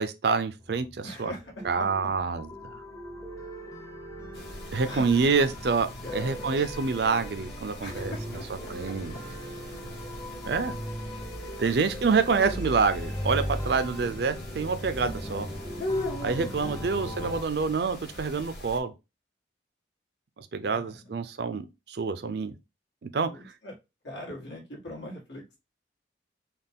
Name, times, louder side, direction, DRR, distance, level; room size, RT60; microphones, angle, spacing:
voice 1, 0.0-1.3 1.6-2.8 4.7-5.9 6.1-8.1 8.7-9.1 10.4-10.7 11.6-15.5 16.2-18.9 20.4-22.6 23.0-23.3, right 5 dB, 60° right, 0.5 m, -27 dB
sound 1, 0.6-17.4, equal, 20° left, 0.7 m, -39 dB
voice 2, 1.0-1.9 4.8-5.3 6.0-6.6 7.8-8.5 11.6-12.0 12.2-12.6 16.6-17.2 20.6-21.2 23.3-23.7 24.0-25.6, left 1 dB, 80° left, 1.7 m, -41 dB
sound 2, 4.3-18.8, left 1 dB, 60° left, 1.1 m, -41 dB
4.1 x 2.3 x 3.6 m
head